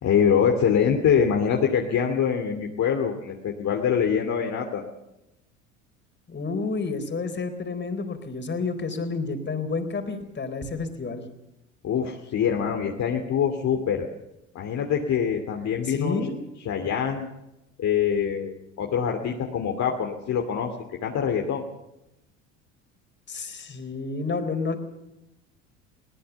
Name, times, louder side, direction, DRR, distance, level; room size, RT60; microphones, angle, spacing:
voice 1, 0.0-4.8 11.8-14.1 14.5-16.3 16.6-17.3 17.8-20.7 21.0-21.7, left 7 dB, 45° left, 2 dB, 2.6 m, -24 dB
voice 2, 6.3-11.2 15.8-16.3 23.3-24.8, left 4 dB, 30° left, 7 dB, 4.2 m, -30 dB
21.5 x 18.5 x 7.1 m, 0.91 s
hypercardioid pair, 75°, 38 cm